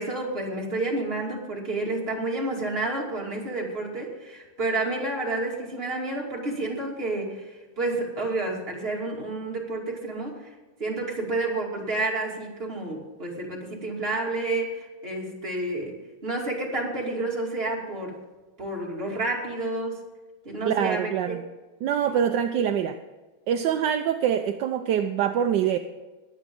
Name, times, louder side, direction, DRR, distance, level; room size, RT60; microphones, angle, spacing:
voice 1, 0.0-10.5 10.8-18.2 18.6-20.0 20.4-21.4, right 2 dB, 25° right, -2 dB, 2.8 m, -30 dB
voice 2, 20.6-21.4 21.8-23.0 23.5-25.8, right 9 dB, 70° right, 7 dB, 1.1 m, -24 dB
21.5 x 8.3 x 3.8 m, 1.2 s
omnidirectional pair, 2.4 m